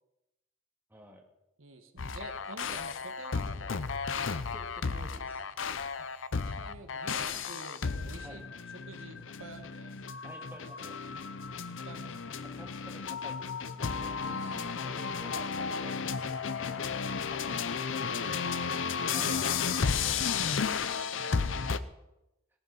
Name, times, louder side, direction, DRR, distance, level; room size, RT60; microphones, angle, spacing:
voice 1, 0.9-1.2 4.5-5.5 8.2-8.5 10.2-10.9 12.6-18.4 19.1-19.4, equal, 10° right, 1 dB, 1.9 m, -52 dB
voice 2, 1.6-3.9 6.0-8.4 8.7-10.0 10.5-11.1 11.8-12.2 14.3-15.1 17.8-21.9, right 3 dB, 80° right, 6 dB, 1.6 m, -49 dB
sound 1, 2.0-21.8, left 5 dB, 65° left, 0.7 m, -33 dB
18.0 x 11.0 x 4.1 m, 0.92 s
head